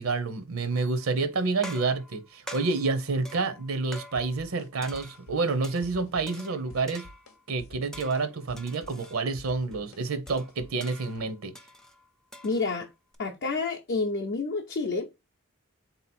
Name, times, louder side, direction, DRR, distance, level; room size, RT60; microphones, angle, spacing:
voice 1, 0.0-7.0 7.5-11.5, right 3 dB, 75° right, 0.7 m, -29 dB
sound 1, 0.7-1.1 1.6-4.5 4.8-5.9 6.3-7.4 7.9-9.2 9.7-9.8 10.3-13.2, equal, 5° left, 0.4 m, -46 dB
sound 2, 4.2-4.7 4.9-5.6 5.8-6.5 6.7-7.3 7.6-11.3, left 2 dB, 90° left, 0.8 m, -49 dB
voice 2, 12.4-12.9 13.2-15.1, left 3 dB, 50° left, 0.6 m, -29 dB
3.9 x 2.8 x 4.2 m
head